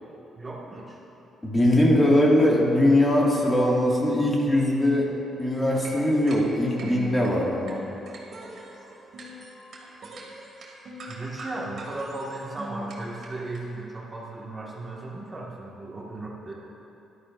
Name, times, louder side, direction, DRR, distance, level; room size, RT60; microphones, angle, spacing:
voice 1, 0.4-1.0 11.1-16.5, right 2 dB, 25° right, -4 dB, 1.7 m, -36 dB
voice 2, 1.4-5.1 5.4-7.8, left 1 dB, 20° left, -4 dB, 1.9 m, -21 dB
sound 1, 5.5-13.6, right 1 dB, 55° right, 2.3 m, -41 dB
14.0 x 11.5 x 2.6 m, 2.9 s
cardioid pair, 90°, 0 cm